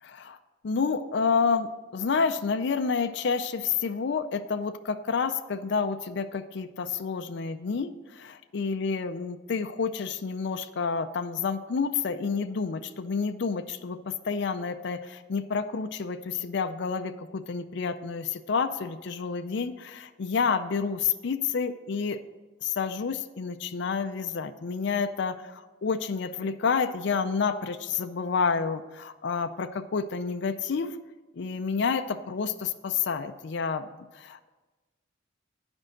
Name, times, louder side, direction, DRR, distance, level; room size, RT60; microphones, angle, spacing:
voice 1, 0.0-0.4 0.6-22.2 22.6-31.0 31.4-33.9 34.2-34.5, left 5 dB, 60° left, 9 dB, 0.4 m, -29 dB
8.8 x 5.3 x 6.4 m, 1.2 s
head